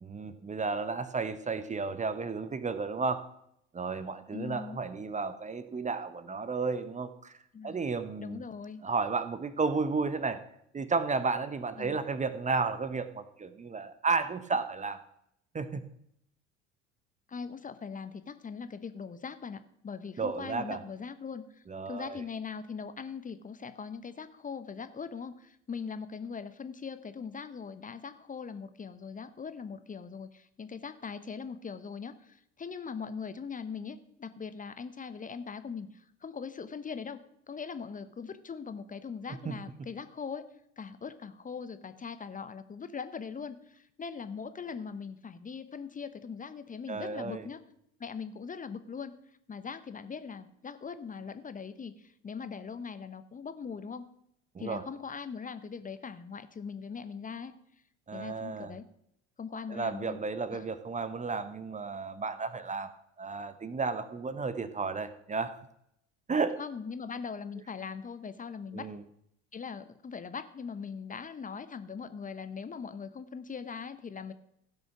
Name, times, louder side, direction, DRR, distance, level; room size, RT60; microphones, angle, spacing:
voice 1, 0.0-3.2 3.7-7.3 7.6-8.4 8.8-10.4 10.7-15.0 15.5-15.8 20.2-20.8 21.7-22.2 39.4-39.5 46.9-47.5 54.5-54.8 58.1-58.8 59.7-62.9 63.2-65.6 66.3-66.6 68.7-69.0, right 4 dB, 20° right, 12 dB, 0.9 m, -33 dB
voice 2, 4.3-4.8 7.5-7.8 8.2-8.8 11.8-12.0 17.3-21.6 21.9-37.2 37.5-47.6 48.0-49.1 49.5-54.1 54.6-57.5 58.1-58.8 59.4-60.2 60.5-60.7 66.6-68.9 69.5-74.3, left 6 dB, 25° left, 12 dB, 0.9 m, -41 dB
16.0 x 6.5 x 6.0 m, 0.75 s
figure-of-eight pair, 60°, 35 cm